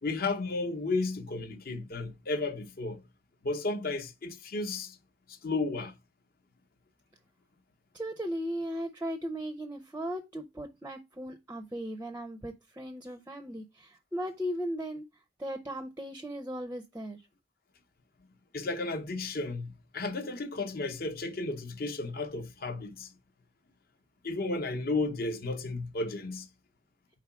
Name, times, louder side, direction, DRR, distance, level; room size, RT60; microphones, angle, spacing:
voice 1, 0.0-3.0 3.4-5.0 5.3-5.9 18.5-23.1 24.2-26.5, left 3 dB, 50° left, 0.7 m, -33 dB
voice 2, 7.9-15.0 15.4-17.2, equal, 10° right, 0.5 m, -37 dB
4.8 x 3.7 x 5.7 m
head